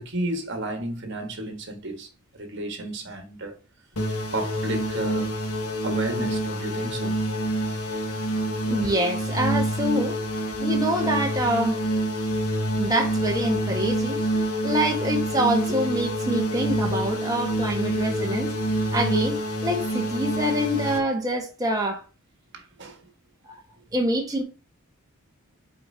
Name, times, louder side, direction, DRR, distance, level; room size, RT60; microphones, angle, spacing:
voice 1, 0.0-2.1 2.3-3.6 4.3-5.3 5.8-7.2 22.5-23.0, right 1 dB, 55° right, 1.6 m, -32 dB
sound 1, 4.0-21.0, right 1 dB, 90° left, 1.6 m, -27 dB
voice 2, 8.6-10.2 10.6-11.8 12.8-14.2 14.6-18.5 18.9-22.0 23.5-23.6 23.9-24.4, right 1 dB, 15° right, 1.5 m, -25 dB
6.8 x 4.9 x 2.8 m
head